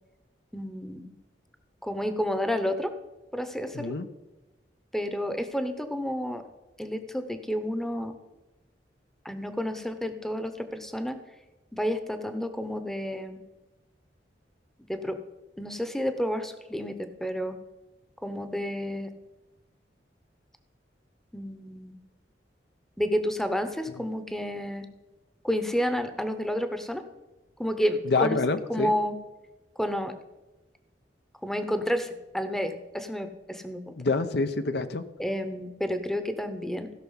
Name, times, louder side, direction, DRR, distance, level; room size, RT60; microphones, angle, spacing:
voice 1, 0.5-1.1 1.8-2.9 3.3-3.9 4.9-6.4 6.8-8.1 9.2-11.2 11.7-13.4 14.9-15.2 15.6-17.6 18.2-19.1 21.3-22.0 23.0-24.9 25.4-27.0 27.6-28.4 28.7-29.2 29.8-30.1 31.4-33.9 35.2-36.9, equal, ahead, 9 dB, 0.8 m, -30 dB
voice 2, 3.7-4.1 28.0-28.9 34.0-35.0, left 3 dB, 65° left, 10 dB, 0.7 m, -26 dB
16.0 x 5.9 x 5.6 m, 1.1 s
head